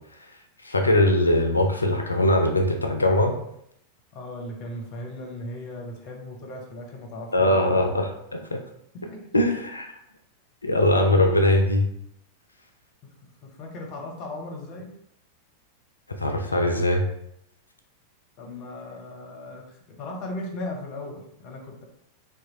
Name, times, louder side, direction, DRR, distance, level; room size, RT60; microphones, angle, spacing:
voice 1, 0.6-3.4 7.3-8.6 9.3-9.9 10.6-11.9 16.2-17.0, left 1 dB, 80° left, 4 dB, 0.3 m, -21 dB
voice 2, 4.1-7.5 9.1-9.2 13.4-14.9 18.4-21.8, left 1 dB, 40° left, 1 dB, 0.7 m, -37 dB
2.8 x 2.2 x 2.9 m, 0.76 s
figure-of-eight pair, 90°, 0 cm